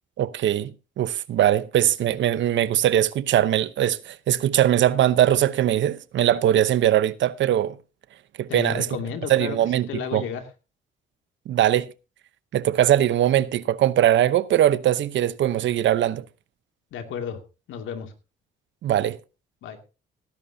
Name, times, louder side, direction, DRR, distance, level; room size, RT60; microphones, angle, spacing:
voice 1, 0.2-7.8 8.4-8.9 9.3-10.2 11.5-11.9 12.5-16.2 18.8-19.2, right 11 dB, 70° right, 0.8 m, -21 dB
voice 2, 8.5-9.6 9.9-10.4 16.9-17.4 17.7-18.1 19.6-19.8, left 7 dB, 80° left, 2.4 m, -32 dB
18.0 x 10.5 x 2.7 m
cardioid pair, 90°, 20 cm